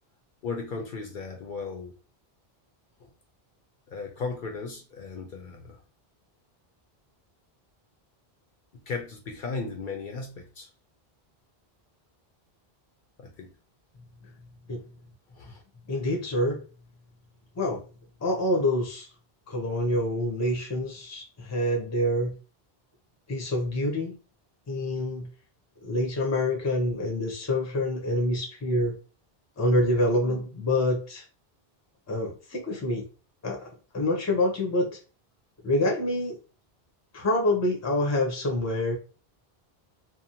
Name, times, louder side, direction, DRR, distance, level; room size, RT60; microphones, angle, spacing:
voice 1, 0.4-1.9 3.9-5.8 8.9-10.7 13.2-13.5 15.3-15.6, left 4 dB, 60° left, 2 dB, 0.6 m, -36 dB
voice 2, 15.9-16.6 17.6-17.8 18.2-19.1 19.5-22.3 23.3-24.2 24.7-25.3 25.8-28.9 29.6-31.2 32.1-33.1 33.4-33.7 33.9-35.0 35.6-36.4 37.1-38.9, left 1 dB, 20° left, 0 dB, 0.5 m, -26 dB
2.6 x 2.0 x 2.7 m, 0.36 s
omnidirectional pair, 1.0 m